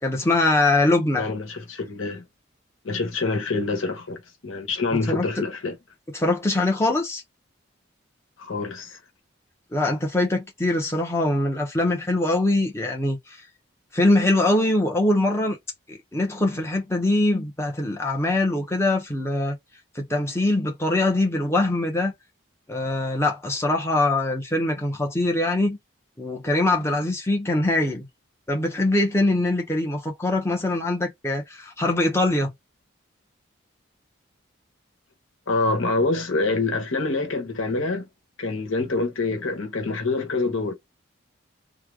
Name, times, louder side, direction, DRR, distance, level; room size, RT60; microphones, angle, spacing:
voice 1, 0.0-1.3 5.1-5.2 6.1-7.2 9.7-13.4 13.9-15.6 15.9-19.6 19.9-22.1 22.7-25.8 26.2-28.1 28.5-32.5, left 2 dB, 15° left, 0.9 m, -23 dB
voice 2, 1.2-2.2 2.8-5.8 8.4-9.0 35.5-38.1 38.4-40.7, left 3 dB, 85° left, 1.1 m, -26 dB
3.2 x 2.2 x 2.4 m
head